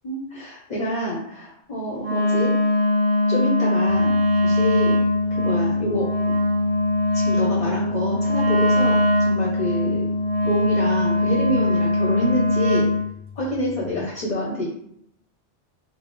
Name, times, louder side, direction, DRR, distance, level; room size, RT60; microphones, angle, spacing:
voice 1, 0.0-2.5 3.3-5.0 5.3-6.4 7.1-10.1 10.4-12.9 13.4-14.6, equal, 45° left, -2 dB, 0.7 m, -27 dB
Wind instrument woodwind instrument, 2.0-13.0, left 1 dB, 35° right, 1.2 m, -21 dB
sound 1, 3.9-13.9, left 6 dB, 85° right, 0.9 m, -42 dB
4.0 x 2.0 x 3.0 m, 0.71 s
omnidirectional pair, 1.1 m